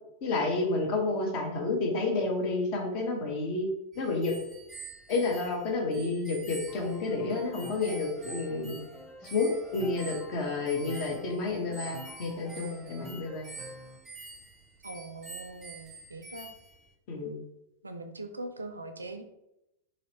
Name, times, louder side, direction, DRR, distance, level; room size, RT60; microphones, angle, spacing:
voice 1, 0.2-3.7 4.0-4.3 5.1-8.8 9.3-13.5 17.1-17.3, left 3 dB, 45° left, 1 dB, 0.8 m, -30 dB
sound 1, 3.9-16.9, right 3 dB, 20° right, 0.5 m, -47 dB
Piano, 6.7-14.0, left 1 dB, ahead, 0.9 m, -48 dB
voice 2, 14.8-16.5 17.8-19.2, right 2 dB, 80° right, 7 dB, 0.3 m, -41 dB
3.0 x 2.8 x 2.9 m, 0.88 s
figure-of-eight pair, 90°, 0 cm